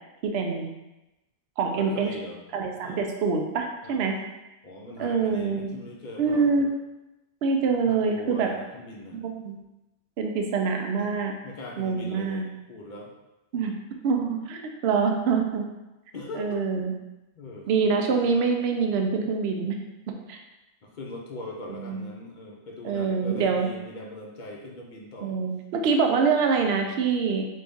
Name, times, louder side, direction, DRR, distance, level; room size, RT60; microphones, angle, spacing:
voice 1, 0.2-0.7 1.6-2.1 2.5-4.1 5.0-5.7 6.2-6.7 7.4-8.5 9.2-9.6 10.2-11.3 11.8-12.4 13.5-13.7 14.0-15.7 16.4-16.9 17.7-19.8 20.3-20.4 21.8-22.1 22.8-23.7 25.2-27.5, right 5 dB, 70° right, 3 dB, 0.8 m, -25 dB
voice 2, 1.7-2.4 2.8-3.1 3.8-4.1 4.6-6.7 7.8-9.2 11.0-11.1 11.4-13.1 16.1-16.6 17.4-17.7 20.8-25.4, left 1 dB, 50° left, 0 dB, 0.7 m, -40 dB
4.0 x 3.2 x 3.5 m, 0.99 s
omnidirectional pair, 1.2 m